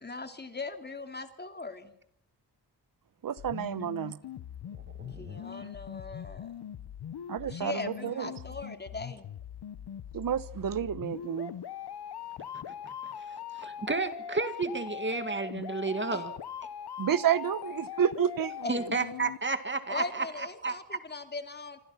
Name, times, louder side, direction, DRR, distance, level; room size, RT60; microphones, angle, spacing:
voice 1, 0.0-1.9 3.8-3.9 5.2-6.5 7.4-9.3 16.1-16.2 18.6-18.7 19.9-21.8, left 3 dB, 25° left, 2.7 m, -39 dB
voice 2, 3.2-4.2 7.3-8.3 10.1-11.5 17.0-18.8, right 9 dB, 55° right, 1.1 m, -30 dB
sound 1, 3.4-19.4, left 9 dB, 75° left, 1.2 m, -41 dB
voice 3, 4.7-5.7 12.7-16.3 18.7-21.0, right 3 dB, 30° right, 2.1 m, -33 dB
27.0 x 26.0 x 5.8 m
wide cardioid pair, 130°, 40 cm